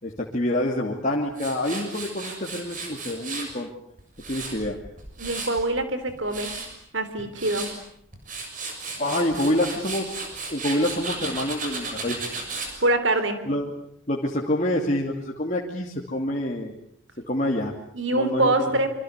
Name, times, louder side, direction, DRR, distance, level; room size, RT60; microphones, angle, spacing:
voice 1, 0.0-3.7 4.3-4.8 9.0-12.2 13.5-13.7 14.1-16.8 17.3-17.7 18.1-18.7, left 1 dB, 35° left, -1 dB, 2.7 m, -27 dB
Tools, 1.4-3.5 4.0-5.6 6.1-6.7 7.2-7.7 8.1-12.7, right 4 dB, 40° right, 6.8 m, -34 dB
voice 2, 5.2-6.5 6.9-7.7 12.8-13.4 17.9-18.9, right 2 dB, 60° right, 11 dB, 3.6 m, -24 dB
27.0 x 25.5 x 8.2 m, 0.69 s
head